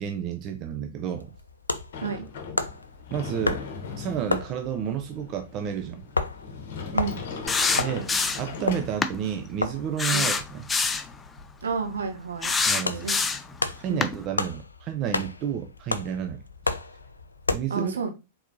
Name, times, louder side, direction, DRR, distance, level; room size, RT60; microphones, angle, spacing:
voice 1, 0.0-1.3 3.1-3.6 4.0-6.0 7.8-8.1 8.4-10.6 12.7-13.1 13.8-16.4 17.5-17.9, right 9 dB, 35° right, 0.5 m, -31 dB
sound 1, 1.2-17.6, left 3 dB, 80° left, 0.4 m, -34 dB
Sliding door, 1.9-9.4, left 5 dB, 55° left, 0.9 m, -39 dB
sound 2, 7.5-8.5 9.0-9.2 10.0-11.1 12.4-13.5 14.0-14.1, left 4 dB, 15° left, 0.5 m, -25 dB
voice 2, 11.6-12.5 12.8-13.2 13.9-14.1 17.7-18.1, right 5 dB, 70° right, 1.0 m, -30 dB
4.3 x 3.9 x 2.8 m
figure-of-eight pair, 100°, 0 cm